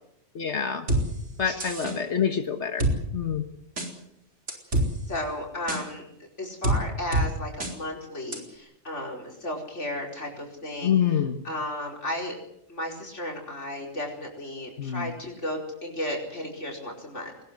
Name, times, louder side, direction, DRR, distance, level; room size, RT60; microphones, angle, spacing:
voice 1, 0.3-0.8 1.4-2.8 3.1-3.4 10.8-11.4 14.8-15.1, left 8 dB, 70° left, 7 dB, 1.7 m, -26 dB
sound 1, 0.9-1.0 1.6-2.0 2.8-2.9 3.8-3.9 4.5-4.9 5.7-5.8 6.6-6.8 7.1-7.3 7.6-7.7 8.3-8.4, right 1 dB, 80° right, 4.5 m, -24 dB
voice 2, 5.1-6.0 6.4-12.3 12.7-17.3, left 1 dB, 85° left, 0 dB, 5.1 m, -34 dB
21.0 x 20.5 x 8.1 m, 0.74 s
omnidirectional pair, 1.2 m